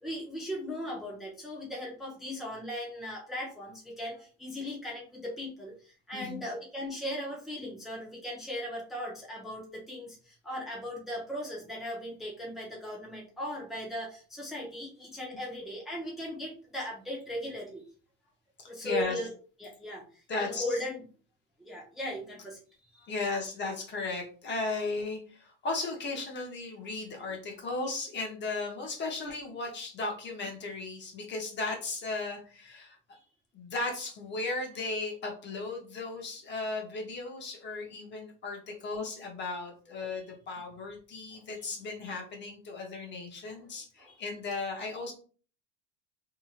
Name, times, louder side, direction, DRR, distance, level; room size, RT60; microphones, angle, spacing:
voice 1, 0.0-17.8 18.7-19.3 19.6-20.0 20.4-21.0 21.6-22.6 22.9-23.1 40.1-40.2 43.4-43.5 44.0-44.1, equal, ahead, -3 dB, 0.7 m, -38 dB
voice 2, 18.6-19.2 20.3-20.8 23.1-33.0 33.5-45.1, left 3 dB, 30° left, 1 dB, 0.9 m, -36 dB
2.8 x 2.6 x 2.4 m, 0.40 s
supercardioid pair, 115°, 35 cm